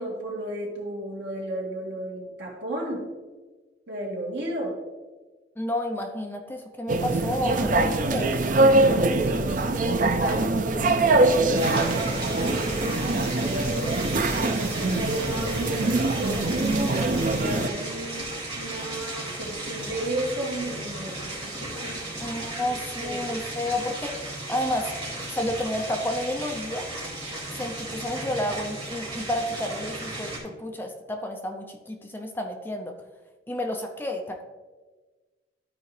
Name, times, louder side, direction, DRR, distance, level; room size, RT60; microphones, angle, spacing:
voice 1, 0.0-3.1 3.9-4.8 8.7-14.1 14.6-22.1 22.6-22.7 23.0-23.2, right 1 dB, 70° right, -2 dB, 2.1 m, -34 dB
voice 2, 5.6-8.4 22.2-24.9 25.3-26.9 27.5-32.9 33.5-34.4, left 1 dB, 10° left, 3 dB, 0.6 m, -31 dB
sound 1, 6.9-17.7, right 2 dB, 45° right, 0.6 m, -23 dB
sound 2, 11.5-30.4, right 1 dB, 25° right, 2.2 m, -35 dB
13.0 x 4.7 x 3.3 m, 1.3 s
head